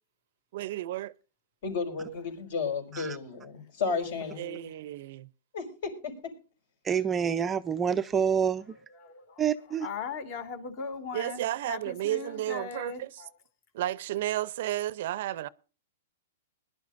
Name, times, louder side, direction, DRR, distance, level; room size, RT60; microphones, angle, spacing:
voice 1, 0.5-1.1 4.4-5.3 11.1-13.1 13.7-15.5, right 14 dB, 55° right, 0.6 m, -32 dB
voice 2, 1.6-4.4 5.5-6.3, left 5 dB, 55° left, 5.2 m, -33 dB
voice 3, 3.9-4.7 8.7-13.3, left 5 dB, 40° left, 2.2 m, -40 dB
voice 4, 6.8-8.6 9.4-9.9, right 7 dB, 15° right, 0.5 m, -27 dB
21.0 x 11.5 x 2.6 m
hypercardioid pair, 155°, 0 cm